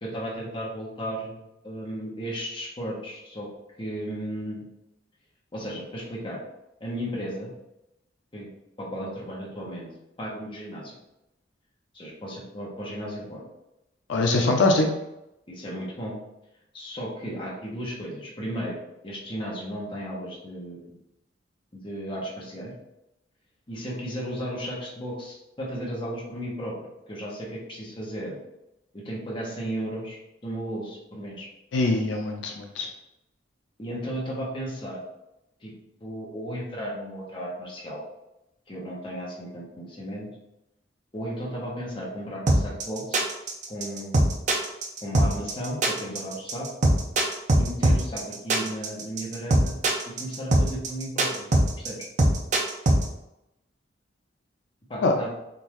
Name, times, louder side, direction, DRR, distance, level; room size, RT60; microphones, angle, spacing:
voice 1, 0.0-3.5 3.8-4.6 5.5-6.4 6.8-7.5 8.3-8.5 8.8-9.9 10.2-11.0 11.9-13.4 14.2-14.5 15.5-16.2 16.7-18.8 19.0-21.0 21.7-22.7 23.7-26.8 27.1-28.4 28.9-31.5 33.8-35.1 35.6-35.7 36.0-38.0 38.7-40.3 41.1-43.2 43.7-44.2 45.0-46.7 47.6-49.8 50.1-51.5 51.8-52.1 54.9-55.3, equal, 30° left, -4 dB, 1.0 m, -35 dB
voice 2, 14.1-14.9 31.7-32.9 55.0-55.1, left 2 dB, 80° left, 2 dB, 0.4 m, -22 dB
sound 1, 42.5-53.0, right 1 dB, 40° right, 0.6 m, -21 dB
3.7 x 2.6 x 3.0 m, 0.88 s
head